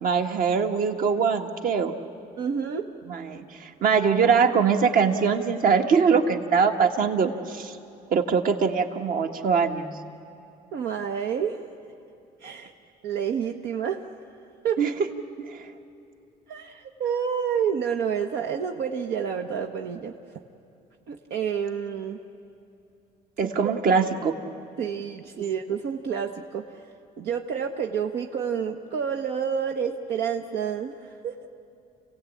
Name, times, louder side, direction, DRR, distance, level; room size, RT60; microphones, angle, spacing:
voice 1, 0.0-1.9 3.1-7.8 8.1-9.9 14.8-14.9 15.5-15.7 23.4-24.3, right 6 dB, 55° right, 5 dB, 1.7 m, -22 dB
voice 2, 2.4-2.9 10.7-11.6 12.4-12.7 13.0-14.1 14.6-14.8 16.5-20.4 21.1-22.2 23.4-23.7 24.8-26.8 27.2-31.5, right 7 dB, 75° right, 2 dB, 1.2 m, -29 dB
28.5 x 17.0 x 8.5 m, 2.7 s
cardioid pair, 110°, 17 cm